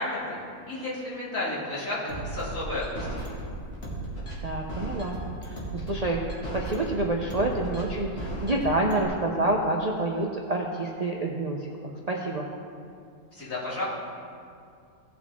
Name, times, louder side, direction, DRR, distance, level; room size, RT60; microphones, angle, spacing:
voice 1, 0.0-3.1 13.3-13.8, left 2 dB, 60° left, -9 dB, 3.2 m, -32 dB
sound 1, 2.1-9.0, right 2 dB, 45° left, 2.3 m, -35 dB
voice 2, 4.4-6.2 6.5-12.5, right 2 dB, 40° right, -1 dB, 0.6 m, -28 dB
17.0 x 6.1 x 3.6 m, 2.4 s
omnidirectional pair, 1.6 m